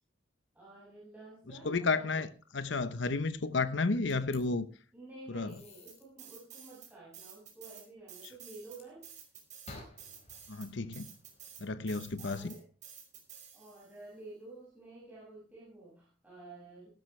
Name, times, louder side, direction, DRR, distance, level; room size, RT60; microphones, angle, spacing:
voice 1, 0.5-2.3 4.9-9.1 12.2-12.7 13.5-16.9, right 2 dB, 10° right, 6.6 m, -51 dB
voice 2, 1.6-2.3 2.5-4.7 5.3-5.5 10.5-11.1 11.6-12.5, left 3 dB, 65° left, 0.9 m, -32 dB
sound 1, 4.1-4.4 5.5-6.0 8.7-9.2 9.6-11.9, left 2 dB, 35° left, 4.8 m, -53 dB
sound 2, 5.9-6.9 7.1-14.0, right 8 dB, 40° right, 5.3 m, -51 dB
17.5 x 12.5 x 3.3 m
head